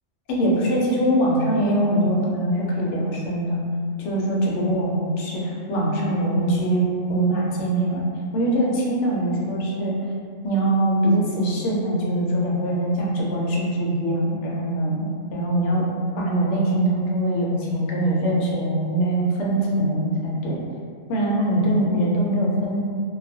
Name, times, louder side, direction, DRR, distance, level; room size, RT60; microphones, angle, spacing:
voice 1, 0.3-3.6 4.0-8.1 8.3-10.0 10.4-15.8 16.1-20.6 21.1-22.8, right 1 dB, 75° left, -4 dB, 0.9 m, -22 dB
2.3 x 2.2 x 2.6 m, 2.2 s
omnidirectional pair, 1.3 m